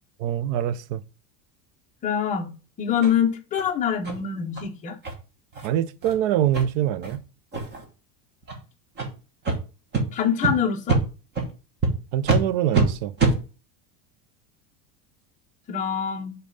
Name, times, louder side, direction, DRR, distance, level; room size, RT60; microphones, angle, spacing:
voice 1, 0.2-1.0 5.6-7.2 12.1-13.1, right 11 dB, 60° right, 0.5 m, -24 dB
voice 2, 2.0-2.5 2.8-5.0 10.1-11.0 15.7-16.3, left 8 dB, 15° left, 0.6 m, -24 dB
sound 1, 3.0-3.1 3.6-3.7 4.0-4.2 4.5-4.6 5.0-5.1 5.5-5.7 6.0-6.1 6.5-6.6 7.0-7.2 7.5-7.8 8.4-8.6 9.0-9.1 9.4-9.6 9.9-10.0 10.4-10.5 10.9-11.0 11.4-11.5 11.8-11.9 12.2-12.4 12.7-12.8 13.2-13.3, right 4 dB, 25° right, 1.1 m, -23 dB
5.2 x 4.1 x 5.3 m
cardioid pair, 175°, 46 cm